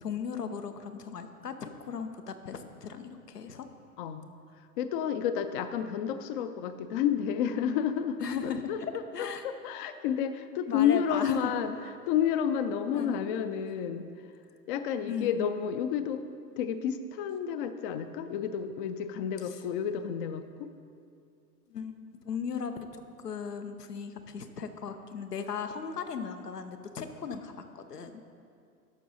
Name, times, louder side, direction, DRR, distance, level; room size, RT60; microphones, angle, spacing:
voice 1, 0.0-3.7 8.2-9.4 10.7-11.5 12.9-13.2 15.0-15.5 21.7-28.2, left 6 dB, 90° left, 8 dB, 0.8 m, -37 dB
voice 2, 4.0-4.3 4.6-11.8 12.1-14.1 14.7-16.2 16.6-20.7, left 8 dB, 40° left, 10 dB, 0.4 m, -30 dB
11.0 x 6.0 x 4.1 m, 2.4 s
hypercardioid pair, 105°, 46 cm